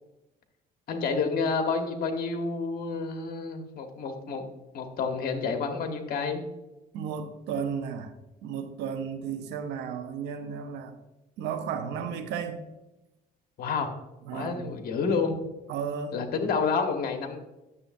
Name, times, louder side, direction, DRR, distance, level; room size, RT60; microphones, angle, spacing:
voice 1, 0.9-4.5 4.7-6.4 13.6-13.9 14.3-15.4 16.1-17.4, left 4 dB, 60° left, 5 dB, 1.3 m, -29 dB
voice 2, 6.9-8.1 8.4-10.9 11.4-12.6 14.3-14.7 15.7-16.1, right 7 dB, 85° right, 8 dB, 0.8 m, -33 dB
9.8 x 7.0 x 2.6 m, 0.98 s
cardioid pair, 110°, 17 cm